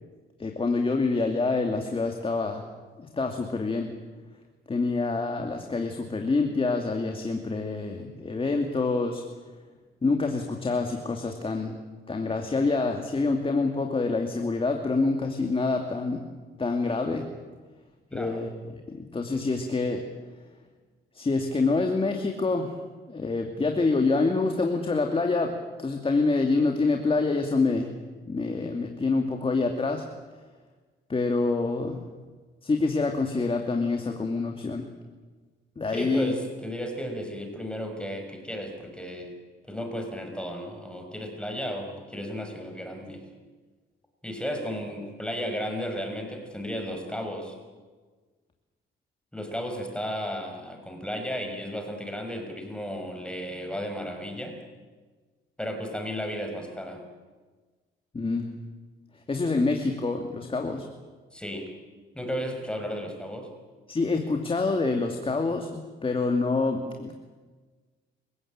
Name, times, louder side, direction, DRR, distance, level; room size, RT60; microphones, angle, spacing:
voice 1, 0.4-2.6 3.0-3.9 4.7-9.2 10.0-11.8 12.1-16.2 16.6-17.3 18.1-18.5 18.9-20.0 21.1-22.8 23.1-27.9 28.3-30.0 31.1-32.0 32.6-34.9 35.8-36.3 58.1-58.5 59.3-60.9 63.9-67.2, left 3 dB, 25° left, 3 dB, 2.6 m, -26 dB
voice 2, 18.1-18.4 35.9-39.4 39.6-43.2 44.2-47.6 49.3-54.6 55.6-57.0 61.3-61.7 62.1-63.5, equal, 5° left, 4 dB, 5.8 m, -34 dB
27.5 x 16.5 x 8.8 m, 1.4 s
cardioid pair, 90°, 20 cm